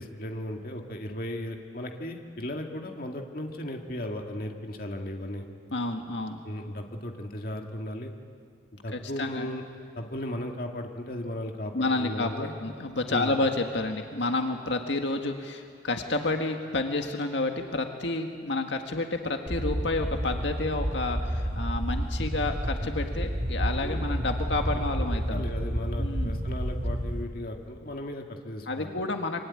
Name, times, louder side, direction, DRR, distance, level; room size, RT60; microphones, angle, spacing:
voice 1, 0.0-5.4 6.4-8.1 8.8-9.6 10.0-12.5 13.1-13.4 23.8-24.1 25.3-28.9, left 1 dB, 50° left, 2 dB, 2.1 m, -36 dB
voice 2, 5.7-6.4 8.9-9.5 11.7-25.4 26.0-26.4 28.7-29.4, left 2 dB, 80° left, 4 dB, 1.8 m, -30 dB
sound 1, 19.5-27.2, equal, 40° right, 2.8 m, -30 dB
25.5 x 23.5 x 9.7 m, 2.2 s
head